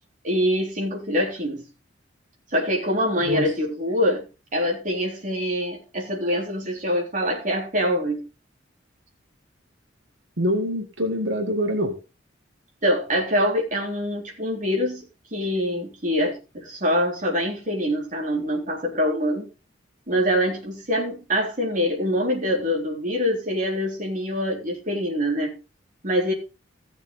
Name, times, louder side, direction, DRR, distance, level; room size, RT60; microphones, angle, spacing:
voice 1, 0.2-1.7 2.5-4.3 4.5-8.3 12.8-19.5 20.1-25.6 26.0-26.3, equal, 45° right, 3.7 m, -24 dB
voice 2, 10.4-11.9, equal, 90° right, 1.7 m, -24 dB
15.5 x 7.1 x 3.9 m
head